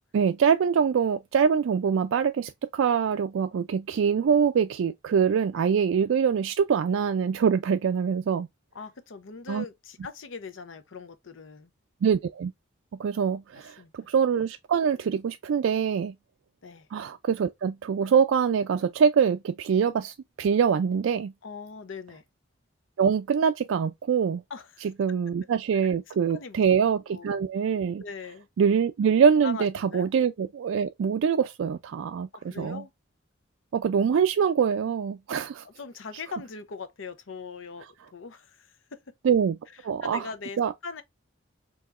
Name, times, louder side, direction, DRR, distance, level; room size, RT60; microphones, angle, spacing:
voice 1, 0.1-8.5 9.5-9.6 12.0-12.5 13.0-16.1 16.9-21.3 23.0-24.4 25.0-28.0 28.6-32.8 33.7-35.6 39.2-39.6 39.8-40.3 40.6-40.7, right 7 dB, 80° right, 0.3 m, -24 dB
voice 2, 8.7-11.7 13.8-14.1 16.6-16.9 21.4-22.2 24.5-24.9 26.1-26.6 27.1-27.4 28.0-28.5 29.4-30.1 32.3-32.9 35.6-37.9 38.1-39.1 40.0-41.0, left 5 dB, 80° left, 0.6 m, -40 dB
4.7 x 2.9 x 2.4 m
head